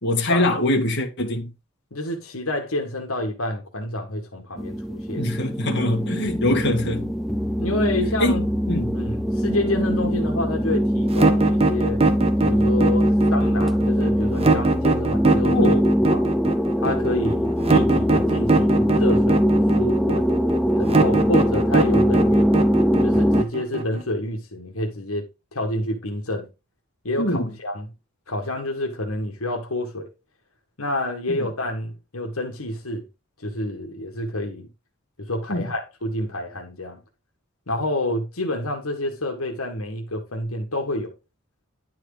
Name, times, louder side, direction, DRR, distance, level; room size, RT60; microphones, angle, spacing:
voice 1, 0.0-1.5 5.2-7.1 8.2-8.4 8.7-8.9 15.4-15.9 27.2-27.5 31.3-31.5 35.5-35.7, left 1 dB, 55° left, 2.2 m, -23 dB
voice 2, 1.9-5.3 6.4-6.6 7.6-8.5 8.9-12.0 12.4-15.6 16.1-16.3 16.8-19.5 19.8-20.2 20.8-22.5 23.0-25.2 25.5-26.5 27.0-27.9 28.3-30.1 30.8-33.1 33.4-34.7 35.2-37.0 37.7-41.1, left 1 dB, 85° left, 1.8 m, -28 dB
sound 1, 4.6-23.4, equal, ahead, 0.5 m, -22 dB
sound 2, 11.1-24.0, right 3 dB, 30° right, 1.1 m, -21 dB
11.0 x 4.8 x 4.9 m
head